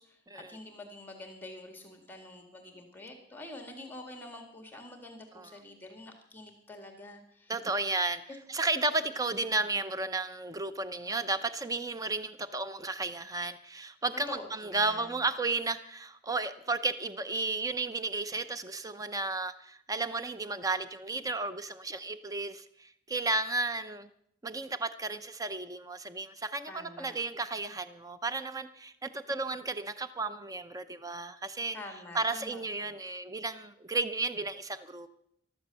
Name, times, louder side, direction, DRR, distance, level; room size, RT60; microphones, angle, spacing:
voice 1, 0.0-7.5 8.3-8.4 9.5-9.6 14.3-15.2 26.7-27.2 31.7-32.9, left 2 dB, 10° left, 4 dB, 2.0 m, -47 dB
voice 2, 7.5-8.2 8.5-24.1 24.4-31.8 32.1-35.1, right 3 dB, 20° right, 11 dB, 0.7 m, -33 dB
14.0 x 12.5 x 6.8 m, 0.72 s
head